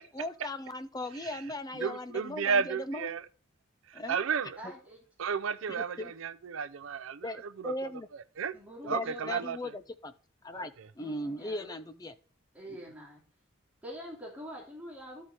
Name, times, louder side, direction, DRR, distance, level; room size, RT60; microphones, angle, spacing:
voice 1, 0.1-3.1 3.9-4.2 5.7-6.1 7.2-8.1 8.8-10.1 10.4-12.1 12.7-12.8, left 1 dB, 20° left, 0.5 m, -38 dB
voice 2, 1.8-3.2 3.9-4.6 5.2-7.3 7.6-7.7 8.4-8.5 8.9-9.6 10.5-10.7, right 6 dB, 70° right, 0.5 m, -32 dB
voice 3, 4.6-5.0 8.5-9.5 11.0-11.8 12.5-13.2 13.8-15.2, equal, 5° right, 2.6 m, -45 dB
12.5 x 4.3 x 4.8 m
head